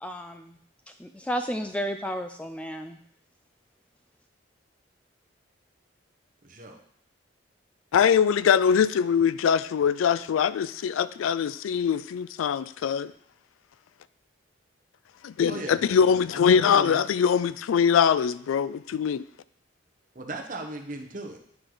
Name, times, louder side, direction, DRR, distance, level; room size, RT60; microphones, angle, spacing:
voice 1, 0.0-0.6 1.0-3.0, equal, 5° left, 0.3 m, -32 dB
voice 2, 6.4-6.8 15.5-17.1 20.1-21.4, right 2 dB, 40° right, 0.9 m, -38 dB
voice 3, 7.9-13.1 15.2-19.2, left 7 dB, 85° left, 0.3 m, -22 dB
9.7 x 4.7 x 3.9 m
head